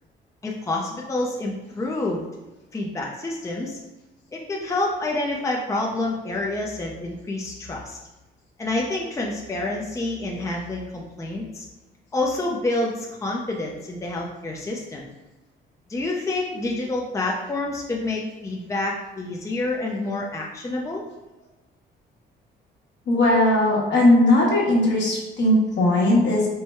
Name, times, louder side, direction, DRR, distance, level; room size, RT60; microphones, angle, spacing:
voice 1, 0.4-2.3 2.7-3.8 4.3-8.0 8.6-11.6 12.1-15.1 15.9-21.0, left 2 dB, 15° left, -1 dB, 0.6 m, -28 dB
voice 2, 23.1-26.5, left 1 dB, 65° left, -3 dB, 1.4 m, -18 dB
4.6 x 2.2 x 4.3 m, 1.1 s
cardioid pair, 90°, 20 cm